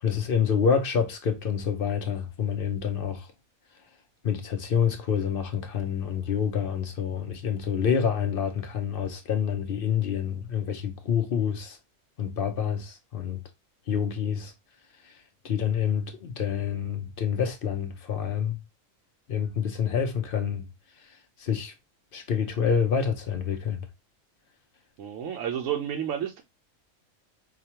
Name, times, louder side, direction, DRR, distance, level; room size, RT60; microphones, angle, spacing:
voice 1, 0.0-3.3 4.2-11.8 12.2-13.4 13.9-14.5 15.0-15.1 15.4-18.6 19.3-20.7 21.4-21.7 22.1-23.9, left 7 dB, 55° left, 0.7 m, -27 dB
voice 2, 25.0-26.4, right 9 dB, 70° right, 1.0 m, -31 dB
4.8 x 2.3 x 2.8 m
omnidirectional pair, 1.4 m